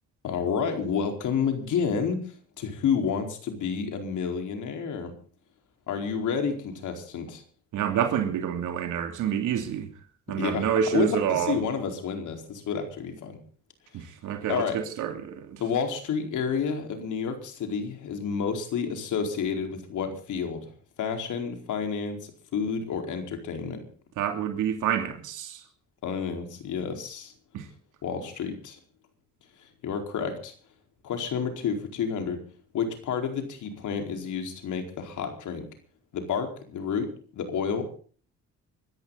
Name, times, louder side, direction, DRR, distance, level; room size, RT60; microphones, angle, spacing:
voice 1, 0.2-5.1 5.9-7.4 10.3-13.4 14.5-14.8 15.6-20.7 21.0-23.8 26.0-27.3 28.0-28.8 29.8-30.5 31.0-32.4 32.7-35.7 36.1-38.0, left 6 dB, 75° left, 4.6 m, -30 dB
voice 2, 7.7-9.9 10.3-11.6 13.9-15.6 24.2-25.6 27.5-27.7, right 9 dB, 85° right, 2.9 m, -28 dB
24.5 x 14.0 x 4.1 m
cardioid pair, 90°, 30 cm